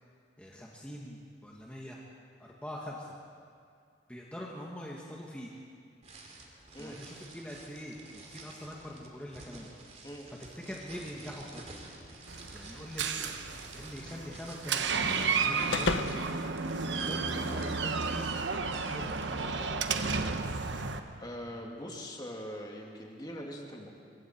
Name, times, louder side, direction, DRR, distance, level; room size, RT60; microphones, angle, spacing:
voice 1, 0.4-2.0 2.4-3.2 4.1-5.5 6.8-9.7 10.6-11.6 12.5-13.2 13.7-16.0 16.8-18.5 18.7-19.9, equal, 5° left, -3 dB, 1.7 m, -43 dB
sound 1, 6.0-19.4, right 2 dB, 35° right, 2.8 m, -50 dB
Door, 12.3-21.0, right 5 dB, 70° right, 1.1 m, -32 dB
sound 2, 13.1-17.5, left 3 dB, 80° left, 0.9 m, -38 dB
voice 2, 21.2-23.9, equal, 20° left, 0 dB, 2.5 m, -42 dB
25.0 x 23.0 x 4.5 m, 2.3 s
head